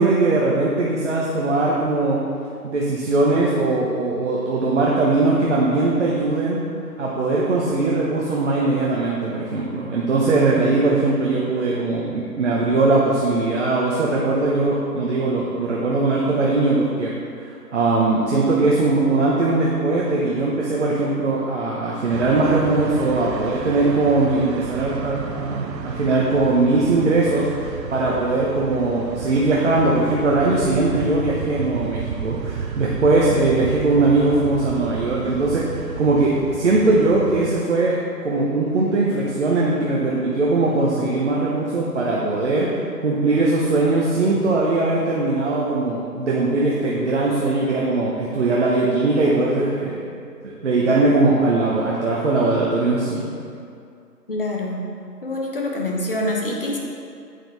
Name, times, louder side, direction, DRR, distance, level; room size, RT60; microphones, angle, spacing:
voice 1, 0.0-2.2 2.6-6.6 7.0-17.1 17.7-38.0 38.2-50.1 50.4-53.2, right 2 dB, 45° right, -4 dB, 1.1 m, -20 dB
sound 1, 22.1-37.6, right 6 dB, 85° right, 0.7 m, -32 dB
voice 2, 54.3-54.8 55.2-56.8, left 1 dB, 35° left, -2 dB, 0.9 m, -25 dB
8.6 x 7.6 x 3.4 m, 2.4 s
figure-of-eight pair, 155°, 49 cm